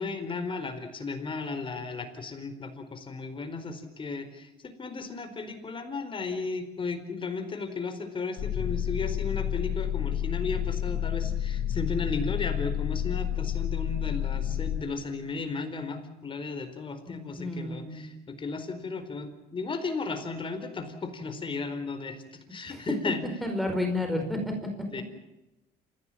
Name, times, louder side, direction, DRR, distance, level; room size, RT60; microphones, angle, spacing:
voice 1, 0.0-23.2 24.9-25.0, left 4 dB, 30° left, 8 dB, 4.5 m, -35 dB
sound 1, 8.4-14.8, left 10 dB, 70° left, 5.3 m, -30 dB
voice 2, 17.4-18.1 22.7-22.8 23.4-24.5, left 1 dB, ahead, 3 dB, 4.8 m, -30 dB
28.0 x 16.5 x 8.7 m, 0.96 s
cardioid pair, 110°, 17 cm